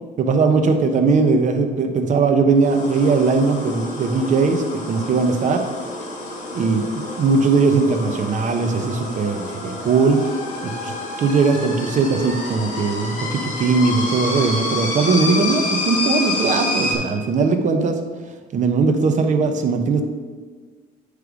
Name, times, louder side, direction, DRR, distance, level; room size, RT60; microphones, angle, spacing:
voice 1, 0.2-5.6 6.5-6.9 7.2-10.2 10.6-10.9 11.2-18.0 18.5-20.0, right 4 dB, 45° right, 6 dB, 0.8 m, -19 dB
sound 1, 2.6-16.9, left 2 dB, 50° left, 1.7 m, -28 dB
9.6 x 3.3 x 4.9 m, 1.5 s
cardioid pair, 110°, 17 cm